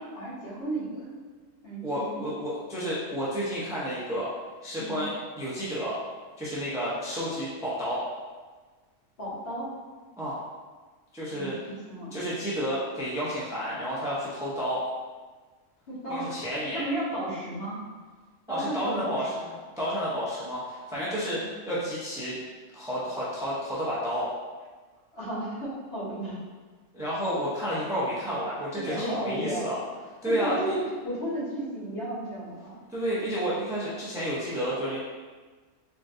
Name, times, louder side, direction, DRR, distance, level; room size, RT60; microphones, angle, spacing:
voice 1, 0.1-1.1 1.6-2.3 4.7-5.0 9.2-9.8 11.3-12.2 15.9-16.3 16.7-17.8 18.5-19.5 21.3-21.4 25.1-26.4 28.9-29.7 30.2-32.8, right 1 dB, 50° left, -11 dB, 1.8 m, -33 dB
voice 2, 1.8-4.3 4.6-5.9 6.4-8.0 10.2-10.4 11.1-11.6 12.1-14.8 16.1-16.9 18.5-19.3 19.8-21.4 21.7-22.4 22.7-24.3 26.9-29.8 30.2-30.7 32.9-35.0, equal, 5° right, -8 dB, 0.4 m, -31 dB
3.7 x 3.5 x 2.6 m, 1.4 s
omnidirectional pair, 1.3 m